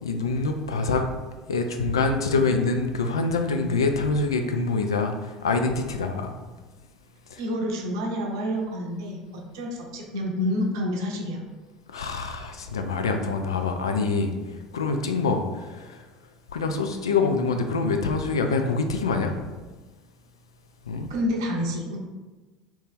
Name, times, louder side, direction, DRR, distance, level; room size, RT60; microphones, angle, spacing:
voice 1, 0.0-1.0 1.5-6.4 7.3-7.4 11.9-14.3 14.7-15.4 15.7-16.0 16.5-19.3 20.9-21.1, left 4 dB, 75° left, 5 dB, 0.3 m, -25 dB
voice 2, 7.4-11.4 15.1-15.3 21.1-22.0, left 1 dB, 65° right, 1 dB, 0.6 m, -28 dB
2.9 x 2.7 x 3.6 m, 1.3 s
figure-of-eight pair, 65°, 3 cm